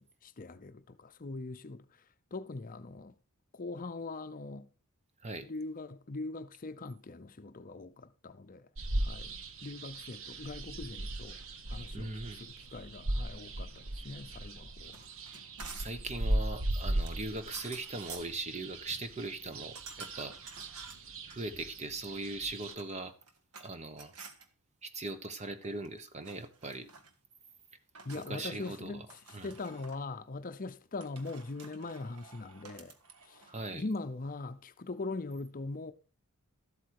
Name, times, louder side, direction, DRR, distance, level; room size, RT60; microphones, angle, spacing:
voice 1, 0.0-2.1 2.3-3.1 3.5-4.7 5.4-8.7 9.0-11.4 11.7-15.1 28.0-33.0 33.2-35.9, left 3 dB, 40° left, 0.7 m, -41 dB
sound 1, 8.8-22.7, right 1 dB, 65° right, 1.1 m, -38 dB
voice 2, 11.9-12.4 15.7-20.4 21.3-23.1 23.6-24.1 24.8-26.9 28.3-29.1 29.3-29.5 33.4-33.8, right 2 dB, 30° right, 1.1 m, -40 dB
sound 2, 14.8-16.1 17.1-18.4 19.7-21.4 22.5-23.7 24.0-24.5 25.6-26.0 26.2-27.1 27.9-28.8 29.1-30.0 31.0-33.5, right 5 dB, 90° right, 1.6 m, -50 dB
13.0 x 8.2 x 4.7 m
head